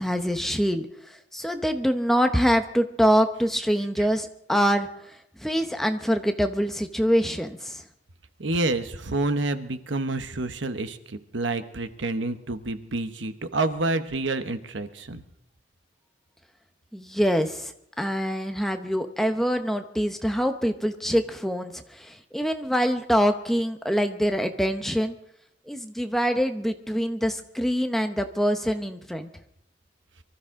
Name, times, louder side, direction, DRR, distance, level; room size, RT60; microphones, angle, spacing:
voice 1, 0.0-7.8 16.9-25.2 25.7-29.3, equal, ahead, 6 dB, 0.9 m, -25 dB
voice 2, 8.4-15.2, right 2 dB, 75° right, 10 dB, 1.0 m, -28 dB
24.0 x 13.0 x 3.7 m, 0.74 s
head